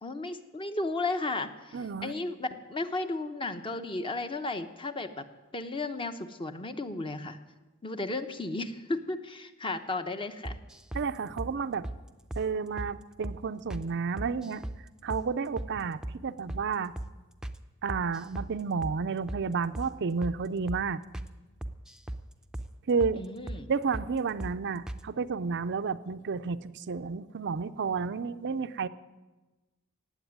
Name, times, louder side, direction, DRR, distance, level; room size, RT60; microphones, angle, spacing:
voice 1, 0.0-5.2 5.5-7.4 7.8-10.6 23.2-23.7, left 2 dB, 25° left, 9 dB, 0.8 m, -34 dB
voice 2, 1.7-2.1 10.9-11.9 12.4-14.6 15.0-16.9 17.8-21.0 22.9-23.2 23.7-28.9, right 5 dB, 55° right, 12 dB, 0.5 m, -31 dB
sound 1, 10.4-11.1 11.4-11.5 11.8-12.0 12.3-12.5 12.8-12.9 13.2-13.4 13.7-13.9 14.2-14.8 15.1-15.3 15.6-15.7 16.0-16.2 16.5-16.7 17.0-17.1 17.4-17.6 17.9-18.5 18.8-19.0 19.3-19.4 19.7-19.9 20.2-20.4 20.7-20.8 21.1-21.3 21.6-22.2 22.5-22.7 23.0-23.2 23.5-23.6 23.9-24.1 24.4-24.6 24.9-25.0, right 1 dB, 5° right, 0.6 m, -37 dB
17.0 x 7.9 x 9.4 m, 1.2 s
head